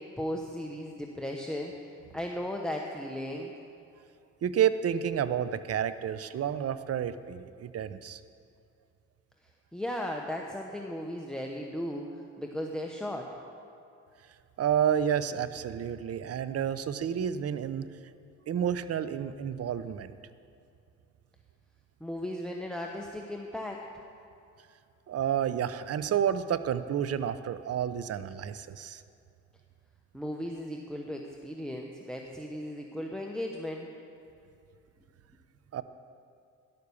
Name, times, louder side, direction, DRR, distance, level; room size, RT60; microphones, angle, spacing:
voice 1, 0.0-3.5 9.4-13.3 22.0-23.9 30.1-33.9, left 1 dB, 5° left, 0 dB, 1.0 m, -36 dB
voice 2, 4.4-8.2 14.6-17.9 18.5-20.2 25.1-29.0 35.7-35.8, right 9 dB, 55° right, 13 dB, 0.7 m, -30 dB
12.0 x 11.0 x 7.0 m, 2.5 s
cardioid pair, 90°, 30 cm